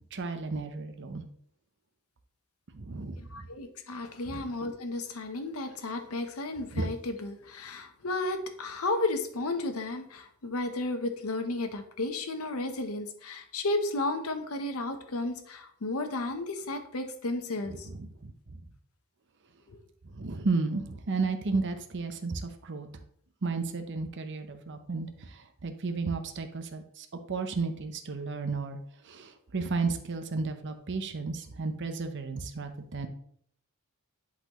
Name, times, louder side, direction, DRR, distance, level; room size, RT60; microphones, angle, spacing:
voice 1, 0.1-1.2 2.7-3.2 4.3-4.4 6.7-6.9 17.9-18.3 20.1-22.9 23.4-28.8 29.0-33.1, right 4 dB, 55° right, 7 dB, 0.7 m, -33 dB
voice 2, 3.2-17.9 19.7-19.8, left 2 dB, 70° left, 7 dB, 0.9 m, -33 dB
10.5 x 4.1 x 3.0 m, 0.63 s
head